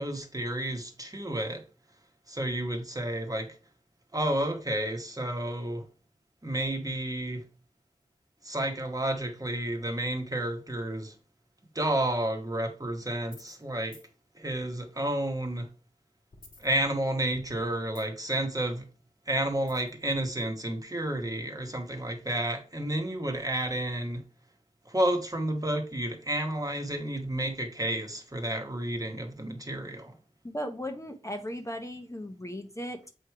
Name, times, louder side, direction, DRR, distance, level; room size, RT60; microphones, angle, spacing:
voice 1, 0.0-1.6 2.3-3.6 4.1-5.9 6.4-7.4 8.4-11.1 11.7-14.0 14.3-15.7 16.6-18.9 19.3-24.2 24.9-30.2, right 1 dB, 25° right, 1.2 m, -31 dB
sound 1, 13.3-13.6 13.9-14.1 16.3-17.2 17.5-18.3 19.7-20.0, left 2 dB, 80° left, 1.5 m, -52 dB
voice 2, 30.4-33.1, equal, 20° left, 0.8 m, -37 dB
7.5 x 3.2 x 4.6 m
wide cardioid pair, 65°, 14 cm